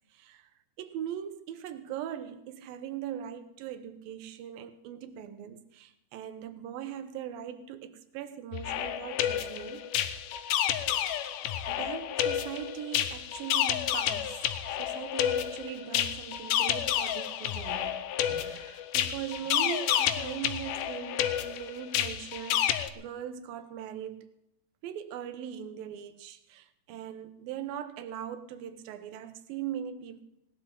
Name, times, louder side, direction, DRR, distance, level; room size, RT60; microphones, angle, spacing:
voice 1, 0.1-0.5 0.8-9.9 11.7-24.3 24.8-30.2, right 10 dB, 75° right, 2.7 m, -40 dB
sound 1, 8.5-22.9, left 10 dB, 75° left, 2.1 m, -30 dB
19.5 x 18.0 x 3.8 m
omnidirectional pair, 4.3 m